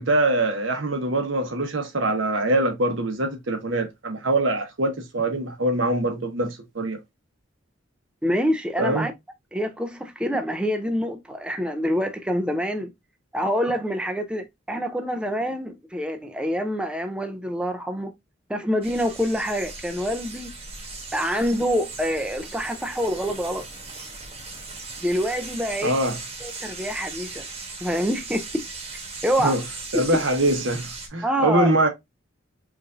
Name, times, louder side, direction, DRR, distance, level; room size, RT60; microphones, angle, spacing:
voice 1, 0.0-7.0 8.8-9.1 25.8-26.2 29.4-29.6 29.9-31.9, right 1 dB, 90° right, 1.0 m, -23 dB
voice 2, 8.2-9.1 9.5-12.9 13.3-18.1 18.5-20.5 21.1-23.6 25.0-26.0 26.4-27.5 27.8-28.6 29.2-29.6 31.2-31.7, equal, 5° right, 0.4 m, -26 dB
sound 1, 18.8-31.1, right 3 dB, 30° right, 1.1 m, -38 dB
4.7 x 2.6 x 2.4 m
head